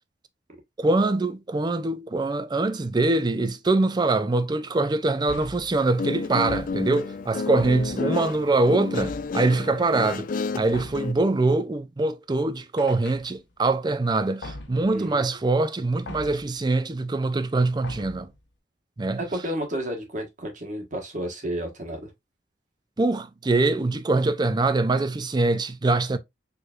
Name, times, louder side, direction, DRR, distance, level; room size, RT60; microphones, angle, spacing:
voice 1, 0.8-18.3 19.0-19.2 23.0-26.2, right 2 dB, 25° right, 0.4 m, -23 dB
sound 1, 5.3-5.8 6.5-7.1 7.6-8.2 9.0-9.5 10.7-11.2 12.8-13.6 14.4-14.9 16.1-16.6 17.8-18.4, left 2 dB, 90° left, 1.0 m, -40 dB
Guitar, 5.8-11.1, left 4 dB, 50° left, 0.3 m, -31 dB
voice 2, 14.9-15.4 19.2-22.1, equal, 45° right, 1.4 m, -31 dB
4.7 x 3.1 x 2.4 m
head